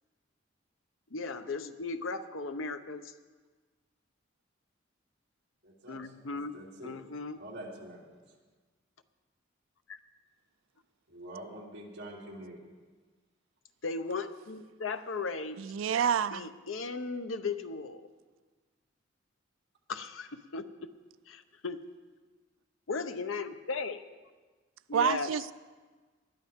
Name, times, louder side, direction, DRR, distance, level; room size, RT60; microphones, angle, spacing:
voice 1, 1.1-3.1 5.9-6.5 6.8-7.4 9.9-10.0 13.8-15.6 16.3-18.0 19.9-20.9 21.3-21.8 22.9-24.0 24.9-25.3, left 4 dB, 85° left, 9 dB, 0.8 m, -36 dB
voice 2, 5.6-6.0 6.3-6.9 7.4-8.1 11.1-12.6, right 1 dB, 60° right, -4 dB, 3.1 m, -45 dB
voice 3, 15.6-16.5 24.9-25.5, right 7 dB, 85° right, 16 dB, 0.4 m, -28 dB
20.0 x 12.5 x 3.6 m, 1.4 s
head